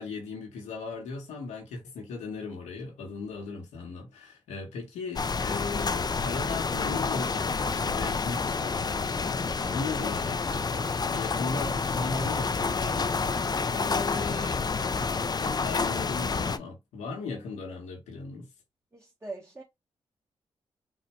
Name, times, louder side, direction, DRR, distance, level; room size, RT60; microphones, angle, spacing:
voice 1, 0.0-14.7 15.2-18.5, left 4 dB, 90° left, 1.2 m, -37 dB
sound 1, 5.2-16.6, left 4 dB, 35° left, 0.4 m, -29 dB
voice 2, 18.9-19.6, right 3 dB, 25° right, 1.2 m, -41 dB
4.0 x 2.2 x 3.0 m
supercardioid pair, 40°, 12 cm